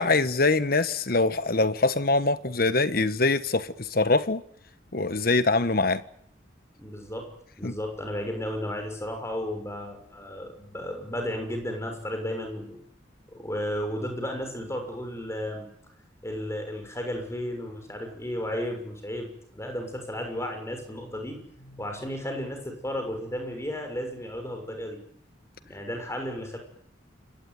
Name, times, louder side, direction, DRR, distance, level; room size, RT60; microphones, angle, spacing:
voice 1, 0.0-4.4 4.9-6.0 7.6-7.7, left 3 dB, 50° left, 1.3 m, -23 dB
voice 2, 6.8-7.3 7.6-12.8 13.3-15.7 16.2-25.0 25.6-26.6, equal, 15° left, 6.5 m, -33 dB
29.0 x 17.5 x 9.5 m
head